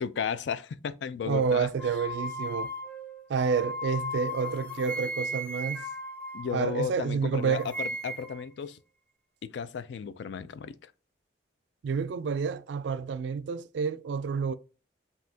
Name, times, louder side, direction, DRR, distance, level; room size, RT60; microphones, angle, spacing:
voice 1, 0.0-1.7 6.3-8.8 9.4-10.9, left 7 dB, 70° left, 0.4 m, -34 dB
voice 2, 1.2-2.7 3.3-5.9 6.5-7.7 11.8-14.5, right 6 dB, 70° right, 0.3 m, -29 dB
sound 1, 1.8-7.1 7.4-8.5, equal, 5° left, 0.5 m, -37 dB
5.4 x 2.8 x 2.7 m
head